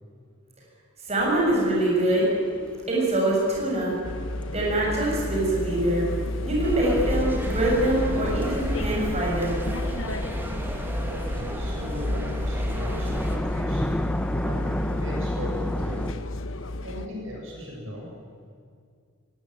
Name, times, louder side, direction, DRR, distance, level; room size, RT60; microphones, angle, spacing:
voice 1, 1.1-2.3 2.9-3.9 4.5-6.1 6.4-9.6, right 1 dB, 30° right, -4 dB, 7.2 m, -24 dB
sound 1, 1.2-7.5 10.3-16.1, equal, 5° left, 0.9 m, -34 dB
sound 2, 4.0-17.1, left 2 dB, 70° left, 1.1 m, -31 dB
sound 3, 6.6-13.4, equal, 10° right, 2.5 m, -32 dB
voice 2, 11.1-13.9 14.4-16.1 16.8-18.0, equal, 70° right, -1 dB, 7.0 m, -37 dB
21.5 x 18.5 x 9.4 m, 2.2 s
head